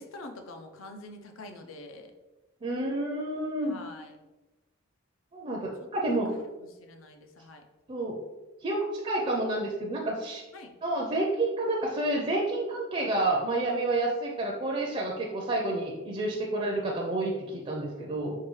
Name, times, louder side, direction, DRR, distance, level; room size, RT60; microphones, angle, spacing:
voice 1, 0.0-2.1 3.6-4.2 6.3-7.6 10.5-10.8, left 2 dB, 90° left, 4 dB, 0.5 m, -46 dB
voice 2, 2.6-3.8 5.3-6.4 7.9-8.2 8.6-10.4 10.8-18.4, right 2 dB, 30° right, -2 dB, 0.4 m, -29 dB
4.6 x 2.3 x 3.1 m, 1.1 s
head